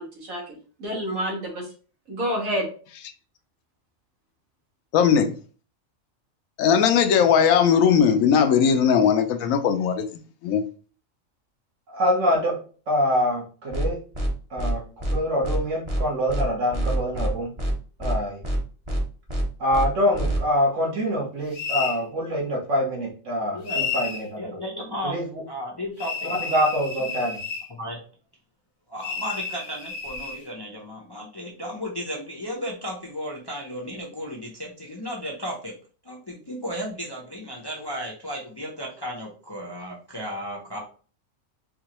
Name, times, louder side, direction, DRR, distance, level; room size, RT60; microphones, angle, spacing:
voice 1, 0.0-1.7 2.1-2.7, equal, 85° right, 1.8 m, -29 dB
voice 2, 4.9-5.4 6.6-10.6, left 7 dB, 80° left, 1.0 m, -19 dB
voice 3, 11.9-12.6 12.9-14.0 14.5-14.8 15.1-17.5 18.0-18.4 19.6-24.4 25.0-25.4 26.2-27.4, equal, 65° right, 1.5 m, -25 dB
sound 1, 13.7-13.9 14.1-14.3 14.6-14.7 15.0-15.1 15.4-15.6 15.9-16.0 16.3-16.4 16.7-17.3 17.6-17.7 18.0-18.1 18.4-18.6 18.9-19.0 19.3-19.4 19.7-19.9 20.1-20.4, right 1 dB, 25° right, 0.8 m, -26 dB
sound 2, 21.5-22.0 23.7-24.2 26.0-27.7 29.0-30.4, left 6 dB, 55° left, 0.8 m, -31 dB
voice 4, 23.5-23.8 24.4-25.1 25.5-26.3 27.7-28.0 28.9-35.7 36.0-40.8, equal, 30° left, 0.5 m, -34 dB
4.5 x 2.4 x 2.9 m
omnidirectional pair, 1.4 m